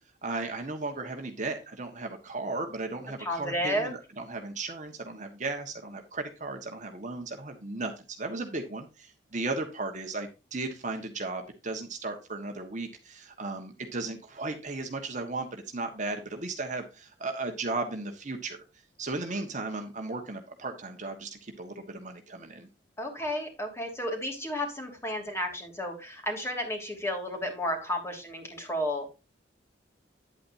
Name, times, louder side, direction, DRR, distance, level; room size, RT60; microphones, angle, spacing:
voice 1, 0.2-18.6 19.0-22.7, right 3 dB, 40° right, 5 dB, 1.4 m, -35 dB
voice 2, 3.2-4.0 7.1-7.2 19.3-19.4 23.0-29.1, equal, 15° left, 2 dB, 2.9 m, -32 dB
9.9 x 8.7 x 2.7 m, 0.28 s
head